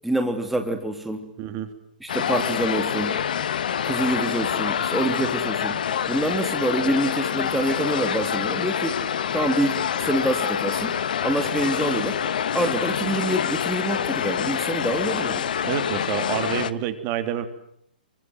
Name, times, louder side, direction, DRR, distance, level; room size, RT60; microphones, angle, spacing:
voice 1, 0.0-1.3 2.0-3.2 3.8-5.8 6.1-8.9 9.3-10.9 11.2-12.2 12.5-15.4, right 1 dB, ahead, 4 dB, 2.9 m, -26 dB
voice 2, 1.4-1.7 15.6-17.4, right 10 dB, 35° right, 9 dB, 3.4 m, -28 dB
sound 1, 2.1-16.7, left 8 dB, 60° left, 1.4 m, -26 dB
29.5 x 24.5 x 7.9 m, 0.69 s
hypercardioid pair, 125°, 5 cm